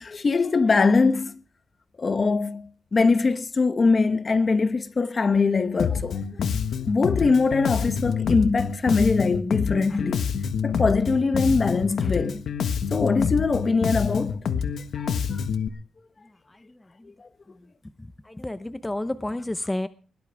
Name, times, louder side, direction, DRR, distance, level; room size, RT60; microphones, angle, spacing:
voice 1, 0.0-1.4 2.0-6.2 6.9-10.3 10.6-12.4 12.9-14.4 15.0-15.4, left 4 dB, 35° left, 1.0 m, -22 dB
Bass guitar, 5.8-15.7, left 7 dB, 65° left, 1.4 m, -27 dB
voice 2, 18.0-19.9, left 1 dB, 10° left, 0.8 m, -31 dB
21.0 x 17.5 x 3.5 m
cardioid pair, 125°, 0 cm